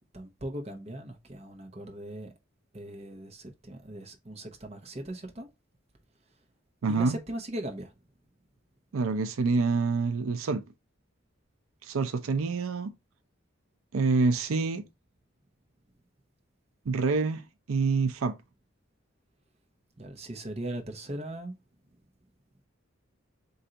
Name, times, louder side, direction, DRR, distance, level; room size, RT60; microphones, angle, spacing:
voice 1, 0.1-2.3 2.7-5.5 6.9-7.9 20.0-21.5, right 1 dB, 30° right, 0.8 m, -39 dB
voice 2, 6.8-7.2 8.9-10.6 11.8-12.9 13.9-14.9 16.9-18.4, right 4 dB, 85° right, 0.5 m, -27 dB
3.9 x 2.6 x 4.3 m
head